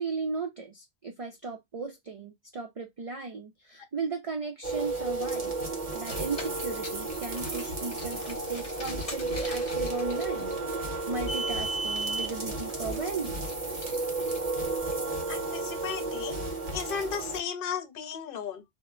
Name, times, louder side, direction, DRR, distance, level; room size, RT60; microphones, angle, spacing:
voice 1, 0.0-5.6 5.9-10.5 11.1-13.4, right 4 dB, 55° right, 0.4 m, -36 dB
sound 1, 4.6-17.4, right 3 dB, 35° right, 0.8 m, -33 dB
Car, 5.9-15.4, right 2 dB, 35° left, 1.0 m, -39 dB
voice 2, 15.3-16.4 16.7-18.6, left 7 dB, 60° left, 0.7 m, -35 dB
2.2 x 2.0 x 3.6 m
omnidirectional pair, 1.1 m